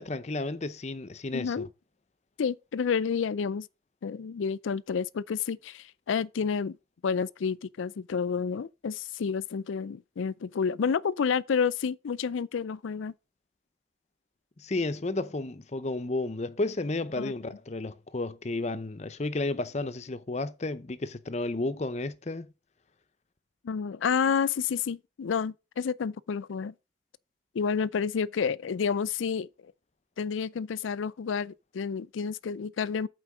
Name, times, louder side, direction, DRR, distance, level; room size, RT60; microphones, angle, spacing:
voice 1, 0.0-1.6 14.6-22.5, left 2 dB, 35° left, 0.6 m, -32 dB
voice 2, 1.3-1.7 2.4-3.7 4.0-6.8 7.0-13.1 17.2-17.3 23.6-26.7 27.5-29.5 30.2-33.1, left 6 dB, 85° left, 0.4 m, -30 dB
8.2 x 4.5 x 6.1 m
head